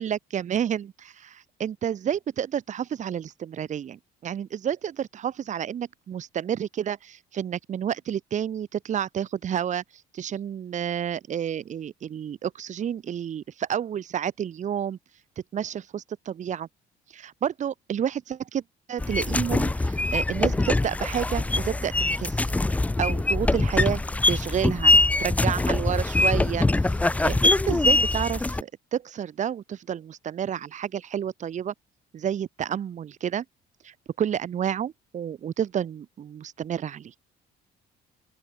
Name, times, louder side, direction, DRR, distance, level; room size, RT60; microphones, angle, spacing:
voice 1, 0.0-15.0 15.5-16.7 17.1-18.6 18.9-22.5 23.0-24.9 25.2-31.7 32.1-33.4 33.8-37.1, right 9 dB, 45° right, 1.6 m, -30 dB
sound 1, 19.0-28.6, left 2 dB, 10° left, 0.5 m, -23 dB
open air
cardioid pair, 110°, 17 cm